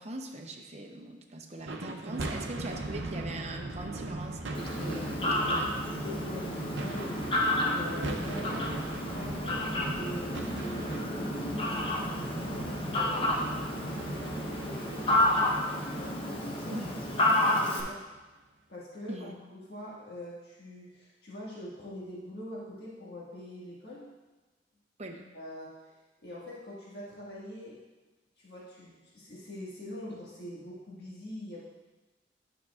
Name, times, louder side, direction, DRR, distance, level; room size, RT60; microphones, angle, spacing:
voice 1, 0.0-5.7 16.7-17.0 19.1-19.3 25.0-25.2, right 2 dB, 40° right, 3 dB, 0.6 m, -41 dB
sound 1, 1.6-18.0, right 2 dB, 90° right, 0.6 m, -39 dB
Fowl, 4.5-17.8, left 1 dB, 30° left, 0.7 m, -30 dB
voice 2, 6.2-11.2 12.4-15.4 15.9-16.2 16.5-16.8 17.2-18.0 18.7-24.1 25.3-27.8 28.4-31.6, left 1 dB, 65° left, -7 dB, 1.6 m, -44 dB
9.2 x 6.1 x 2.4 m, 1.2 s
head